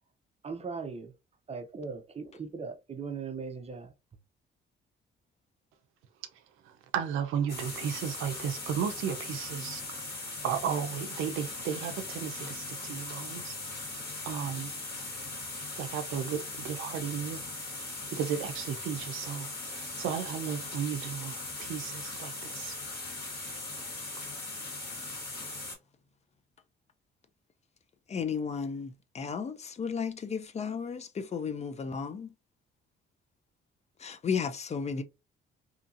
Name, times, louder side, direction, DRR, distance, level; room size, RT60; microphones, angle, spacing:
voice 1, 0.4-1.1 1.5-3.9, right 5 dB, 30° right, 0.5 m, -39 dB
voice 2, 6.6-9.8 10.4-13.6 14.2-14.7 15.8-17.4 18.1-22.8, right 8 dB, 85° right, 0.5 m, -34 dB
sound 1, 7.5-25.8, left 2 dB, 50° left, 1.7 m, -39 dB
voice 3, 28.1-32.3 34.0-35.0, left 6 dB, 35° left, 0.4 m, -34 dB
2.8 x 2.6 x 2.4 m
cardioid pair, 90°, 20 cm